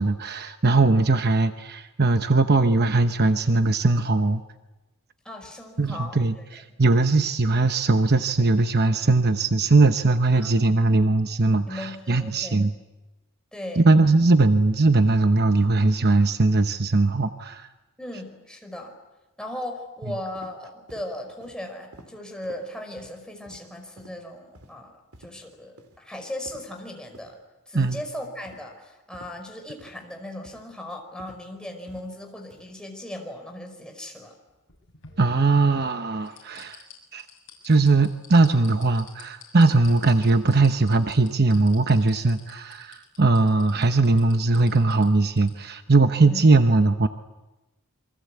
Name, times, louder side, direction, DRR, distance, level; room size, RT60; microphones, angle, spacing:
voice 1, 0.0-4.4 5.8-12.7 13.8-17.7 27.7-28.0 35.2-36.8 37.1-37.3 37.6-47.1, right 3 dB, 45° right, 8 dB, 1.0 m, -20 dB
voice 2, 5.2-6.4 10.3-10.5 11.7-12.7 13.5-13.9 18.0-18.9 19.4-27.4 27.7-34.3 46.2-46.4, left 1 dB, 5° left, 2 dB, 5.0 m, -37 dB
sound 1, 20.4-20.5 20.9-21.1 21.4-21.6 21.9-22.1 22.4-22.6 23.0-23.1 23.5-23.6 24.0-24.2 24.5-24.7 25.1-25.3 25.8-26.0 26.5-26.6 27.1-27.3 27.8-28.0 28.5-28.6 29.1-29.3 29.8-30.0 30.4-30.6 31.2-31.4 31.9-32.1 32.5-32.7, right 1 dB, 80° right, 3.1 m, -49 dB
sound 2, 34.5-35.8 36.2-45.5 45.9-46.0, left 7 dB, 60° left, 7.0 m, -49 dB
28.0 x 24.0 x 8.4 m, 1.1 s
head